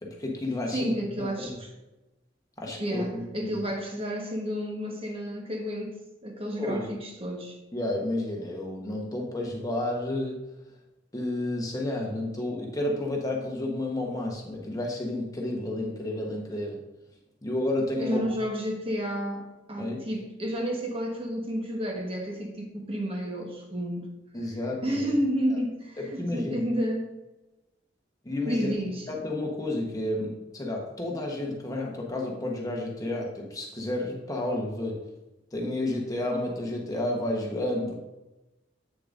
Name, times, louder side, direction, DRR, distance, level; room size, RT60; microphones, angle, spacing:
voice 1, 0.0-1.6 2.6-3.6 6.6-6.9 7.7-10.5 11.1-16.8 17.4-18.2 19.8-20.0 24.3-25.1 26.0-26.6 28.2-28.7 29.1-35.0 35.5-38.0, left 1 dB, 20° left, -1 dB, 1.1 m, -31 dB
voice 2, 0.7-1.7 2.8-7.6 18.0-24.1 24.8-27.1 28.5-29.1, equal, 30° right, 1 dB, 1.2 m, -31 dB
8.5 x 6.8 x 2.6 m, 1.0 s
head